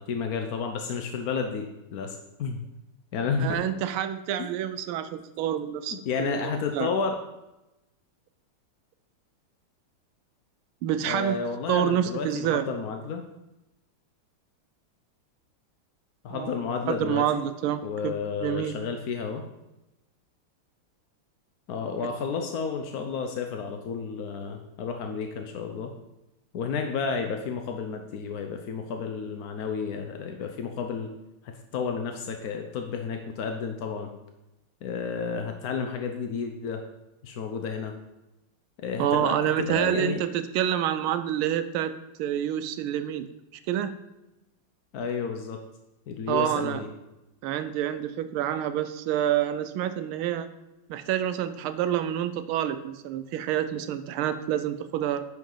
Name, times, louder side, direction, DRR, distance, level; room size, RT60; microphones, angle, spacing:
voice 1, 0.0-2.6 3.1-3.6 4.4-4.5 5.6-7.2 11.0-13.2 16.2-17.4 17.8-19.4 21.7-25.9 26.5-31.1 31.4-34.1 34.8-36.8 37.2-37.9 38.8-40.3 44.9-45.6 46.1-46.9, left 5 dB, 70° left, 5 dB, 0.9 m, -31 dB
voice 2, 3.4-6.9 10.8-11.4 11.7-12.7 16.3-18.1 18.4-18.7 22.0-22.1 39.0-41.9 42.2-43.3 43.7-43.9 46.3-46.8 47.4-50.5 50.9-55.3, right 10 dB, 80° right, 10 dB, 1.4 m, -28 dB
10.0 x 6.2 x 3.9 m, 0.94 s
omnidirectional pair, 2.4 m